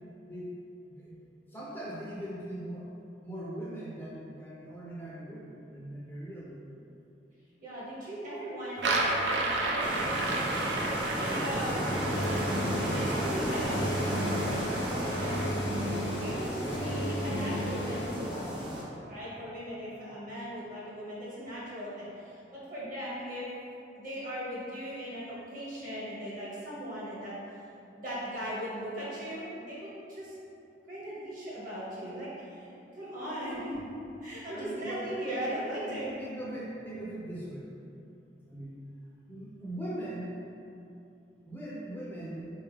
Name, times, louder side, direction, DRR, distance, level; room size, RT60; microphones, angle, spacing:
voice 1, 1.5-2.9 3.2-6.8 34.5-35.2 35.8-37.7 38.5-38.7 39.3-40.4 41.5-42.5, right 1 dB, 10° left, -7 dB, 0.4 m, -40 dB
voice 2, 7.6-10.5 11.2-15.4 16.2-18.4 19.1-23.5 24.0-27.3 28.0-30.3 30.9-33.9 34.2-36.1, equal, 50° right, -8 dB, 1.1 m, -38 dB
sound 1, 8.8-15.5, right 2 dB, 75° right, 0.4 m, -33 dB
sound 2, 9.8-18.8, equal, 30° right, 0.6 m, -34 dB
sound 3, 11.8-18.2, equal, 70° left, 0.4 m, -34 dB
3.8 x 2.3 x 3.2 m, 2.7 s
head